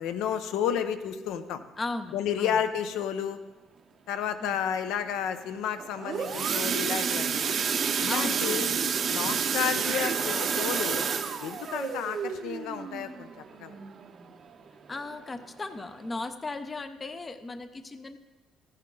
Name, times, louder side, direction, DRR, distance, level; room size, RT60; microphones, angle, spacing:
voice 1, 0.0-1.6 2.1-3.4 4.1-7.5 8.0-8.7 9.1-11.1 11.4-13.3 13.6-13.7, left 8 dB, 85° left, 10 dB, 0.7 m, -31 dB
voice 2, 1.8-2.6 4.4-4.6 8.1-8.7 14.9-18.2, left 3 dB, 15° left, 10 dB, 0.4 m, -36 dB
sound 1, 5.8-14.5 14.9-15.1 15.4-15.5 16.0-16.1, right 6 dB, 35° right, 0.6 m, -29 dB
14.5 x 9.8 x 3.8 m, 1.2 s
cardioid pair, 175°, 0 cm